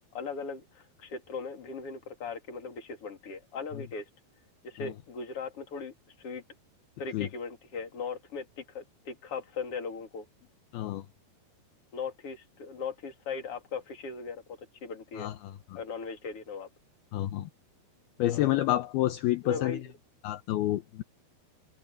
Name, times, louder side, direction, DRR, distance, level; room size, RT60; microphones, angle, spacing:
voice 1, 0.0-4.1 4.6-6.4 7.0-10.3 11.9-15.3 15.8-16.7 18.3-18.5 19.4-19.8, left 5 dB, 35° left, 3.6 m, -38 dB
voice 2, 10.7-11.1 15.2-15.8 17.1-17.5 18.2-19.9 20.2-21.0, left 15 dB, 75° left, 2.7 m, -29 dB
omnidirectional pair, 4.8 m